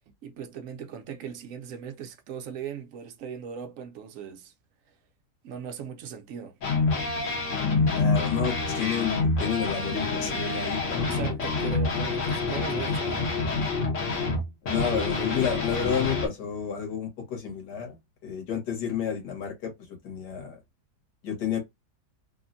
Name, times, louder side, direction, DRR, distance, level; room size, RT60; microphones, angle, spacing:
voice 1, 0.2-4.5 5.4-6.6 11.1-13.3, right 7 dB, 65° right, 0.9 m, -38 dB
sound 1, 6.6-16.3, left 3 dB, 55° left, 1.2 m, -27 dB
voice 2, 7.9-11.2 14.6-18.0 18.2-19.7 20.0-20.6 21.2-21.6, left 7 dB, 90° left, 1.8 m, -30 dB
3.5 x 2.1 x 2.5 m
omnidirectional pair, 1.7 m